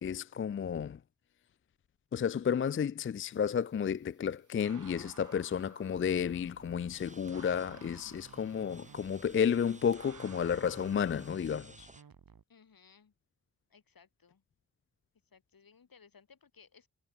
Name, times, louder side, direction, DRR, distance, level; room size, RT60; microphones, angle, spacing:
voice 1, 0.0-1.0 2.1-11.9, left 7 dB, 35° left, 0.4 m, -32 dB
sound 1, 3.3-11.3, right 7 dB, 60° right, 1.2 m, -57 dB
sound 2, 6.2-12.4, right 6 dB, 80° right, 4.4 m, -57 dB
sound 3, 6.9-12.0, right 2 dB, 20° right, 4.5 m, -58 dB
voice 2, 12.5-13.2 13.7-14.4 15.2-16.9, left 6 dB, 75° left, 7.5 m, -61 dB
wide cardioid pair, 80°, 35 cm